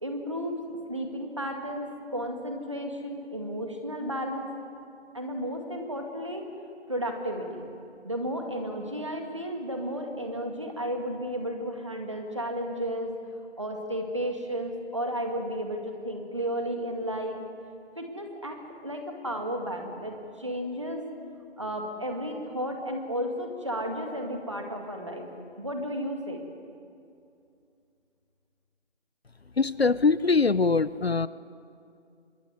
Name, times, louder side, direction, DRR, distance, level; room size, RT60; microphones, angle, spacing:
voice 1, 0.0-0.6 0.9-4.5 5.1-6.5 6.9-7.7 8.0-13.2 13.6-17.4 18.0-21.1 21.6-25.3 25.6-26.5, equal, 25° right, 3 dB, 2.1 m, -33 dB
voice 2, 29.6-31.3, left 4 dB, 60° left, 17 dB, 0.7 m, -23 dB
25.0 x 21.5 x 9.6 m, 2.5 s
figure-of-eight pair, 180°, 34 cm